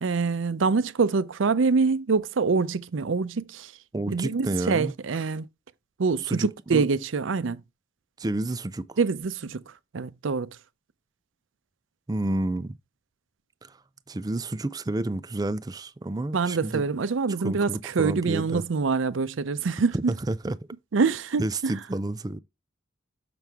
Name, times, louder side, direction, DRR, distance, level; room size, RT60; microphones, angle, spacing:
voice 1, 0.0-3.7 4.1-5.5 6.0-7.6 9.0-10.5 16.3-20.1 20.9-21.7, right 4 dB, 90° right, 0.5 m, -25 dB
voice 2, 3.9-4.9 6.2-6.9 8.2-9.0 12.1-12.8 13.6-13.8 14.1-16.8 17.4-18.6 19.9-20.6 21.4-22.4, right 2 dB, 20° right, 0.4 m, -30 dB
6.8 x 6.1 x 3.5 m
head